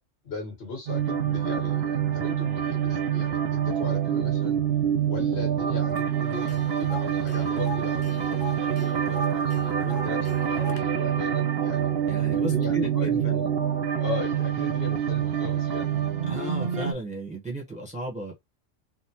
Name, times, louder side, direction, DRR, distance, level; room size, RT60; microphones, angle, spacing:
voice 1, 0.2-4.6 5.0-11.9 12.4-13.5 14.0-15.9, left 4 dB, 55° left, 1.6 m, -38 dB
sound 1, 0.9-16.9, right 9 dB, 65° right, 0.7 m, -26 dB
Tick, 6.0-6.1 6.3-10.8, left 6 dB, 80° left, 1.0 m, -42 dB
voice 2, 12.1-13.4 16.3-18.3, right 2 dB, 5° right, 0.8 m, -34 dB
3.6 x 2.0 x 2.8 m
omnidirectional pair, 1.3 m